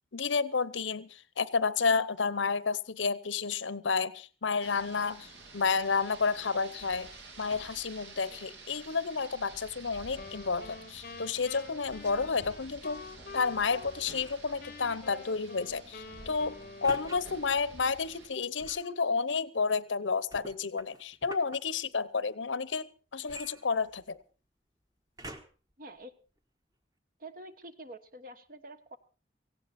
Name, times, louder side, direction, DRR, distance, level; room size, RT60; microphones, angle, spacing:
voice 1, 0.1-7.1 7.4-13.0 13.3-22.8 23.1-24.2, left 5 dB, 85° left, 0.9 m, -31 dB
Rain, 4.6-18.3, right 2 dB, 70° right, 2.9 m, -50 dB
Wind instrument woodwind instrument, 10.1-14.3 14.6-17.5, left 4 dB, 50° left, 0.8 m, -48 dB
sound 1, 14.1-14.5 16.8-17.2 18.6-18.9 20.3-21.6 23.3-24.2 25.2-25.7 26.4-26.5, right 1 dB, 20° right, 1.3 m, -47 dB
voice 2, 25.8-26.1 27.2-29.0, right 1 dB, 50° right, 1.3 m, -47 dB
17.5 x 16.0 x 4.3 m
head